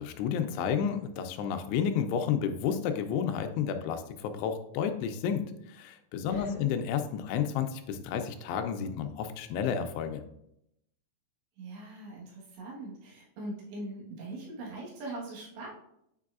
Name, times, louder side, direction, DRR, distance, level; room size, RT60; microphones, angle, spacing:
voice 1, 0.0-10.2, left 7 dB, 90° left, 6 dB, 2.8 m, -31 dB
voice 2, 6.3-6.7 11.6-15.7, right 2 dB, 80° right, -3 dB, 3.5 m, -41 dB
8.3 x 4.7 x 2.4 m, 0.79 s
omnidirectional pair, 4.8 m